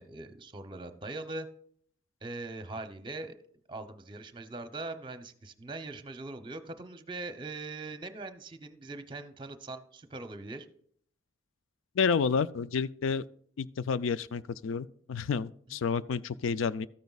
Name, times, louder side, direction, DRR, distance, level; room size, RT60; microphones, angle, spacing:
voice 1, 0.0-1.5 2.2-3.4 3.7-10.7 15.7-15.8, right 2 dB, 25° right, 0.7 m, -41 dB
voice 2, 12.0-13.2 13.6-16.9, left 5 dB, 85° left, 0.4 m, -30 dB
13.0 x 9.3 x 2.4 m
head